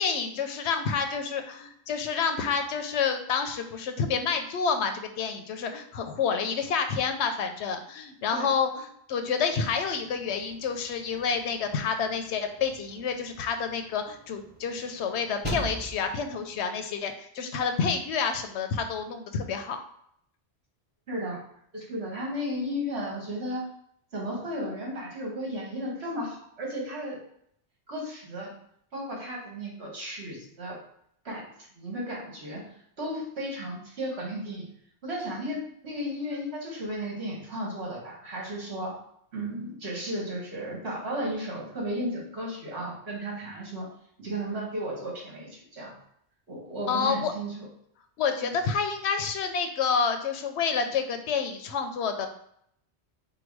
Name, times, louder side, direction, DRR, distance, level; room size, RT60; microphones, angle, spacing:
voice 1, 0.0-19.8 46.9-47.3 48.2-52.3, left 6 dB, 80° left, 6 dB, 0.9 m, -29 dB
sound 1, 9.6-16.6, right 1 dB, 15° right, 0.4 m, -43 dB
voice 2, 21.1-21.4 21.7-23.7 24.1-27.2 27.9-28.5 28.9-30.8 31.3-31.5 31.8-32.6 33.0-34.7 35.0-39.0 39.3-43.9 44.2-45.9 46.5-47.7 48.4-48.5, equal, 70° right, -3 dB, 1.7 m, -34 dB
4.7 x 2.2 x 4.5 m, 0.69 s
omnidirectional pair, 1.1 m